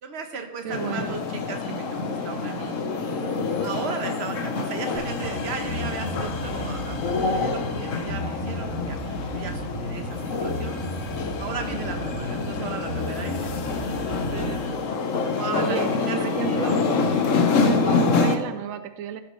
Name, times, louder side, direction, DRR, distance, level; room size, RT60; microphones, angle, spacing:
voice 1, 0.0-2.8 3.6-13.6 13.9-14.6 15.4-15.8 16.1-16.7, right 5 dB, 55° right, 5 dB, 1.3 m, -36 dB
voice 2, 0.6-1.2 15.5-16.8 17.6-19.2, right 9 dB, 90° right, 10 dB, 1.0 m, -32 dB
sound 1, 0.7-18.4, left 4 dB, 75° left, 1.3 m, -26 dB
sound 2, 4.9-14.5, equal, 30° left, 2.4 m, -34 dB
15.5 x 7.2 x 3.2 m, 1.1 s
omnidirectional pair, 1.3 m